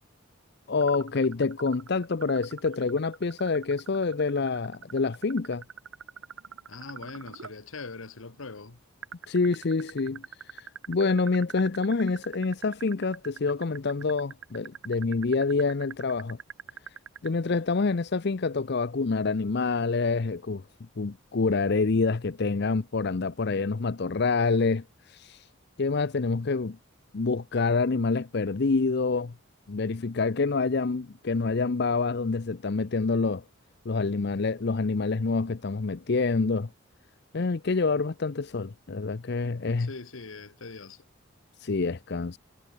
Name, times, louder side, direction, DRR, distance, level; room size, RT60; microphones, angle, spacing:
voice 1, 0.7-5.6 9.3-10.2 10.5-16.4 17.2-20.6 21.0-25.5 25.8-26.8 27.1-29.3 29.7-33.4 33.8-36.7 37.3-39.9 41.6-42.4, left 4 dB, 55° left, 0.6 m, -27 dB
sound 1, 0.8-7.6 9.0-17.3, right 7 dB, 90° right, 0.9 m, -43 dB
voice 2, 6.7-8.8 39.6-41.1, left 3 dB, 85° left, 1.3 m, -42 dB
head